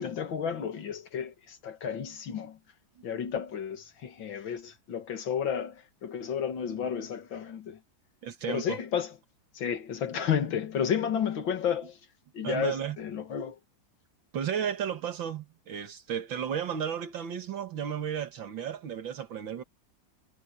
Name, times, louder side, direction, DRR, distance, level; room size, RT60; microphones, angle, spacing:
voice 1, 0.0-2.6 3.0-7.8 8.5-9.1 9.5-12.0 12.3-13.6, left 8 dB, 85° left, 2.4 m, -32 dB
voice 2, 8.2-8.8 12.4-13.0 14.3-19.6, right 8 dB, 85° right, 2.4 m, -33 dB
omnidirectional pair, 2.0 m